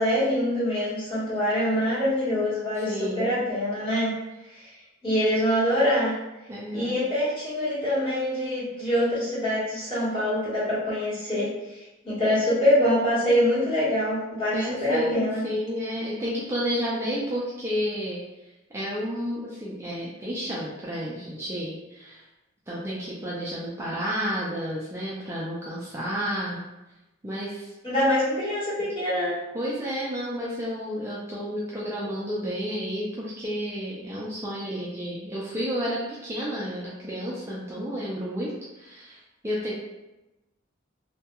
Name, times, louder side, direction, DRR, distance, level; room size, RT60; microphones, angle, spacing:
voice 1, 0.0-4.1 4.5-4.6 5.0-6.1 6.7-15.4 27.8-29.4, left 1 dB, 25° left, -10 dB, 1.1 m, -25 dB
voice 2, 2.8-3.4 6.5-7.0 14.5-18.2 18.7-22.2 22.7-26.6 27.2-27.7 29.5-39.7, equal, 15° right, -7 dB, 0.3 m, -31 dB
2.2 x 2.2 x 2.8 m, 1.0 s
head